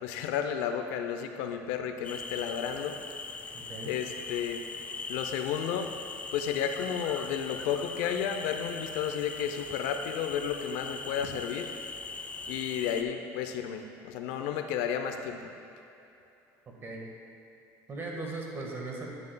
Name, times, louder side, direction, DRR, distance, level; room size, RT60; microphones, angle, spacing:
voice 1, 0.0-3.0 3.9-4.6 5.1-5.9 6.3-11.7 12.5-15.5, left 8 dB, 85° left, 6 dB, 0.5 m, -32 dB
sound 1, 2.0-13.0, left 4 dB, 20° left, 0.4 m, -41 dB
voice 2, 3.5-3.9 16.8-17.1 17.9-19.1, right 3 dB, 35° right, -1 dB, 1.5 m, -38 dB
9.8 x 9.5 x 2.2 m, 2.8 s
cardioid pair, 120°, 7 cm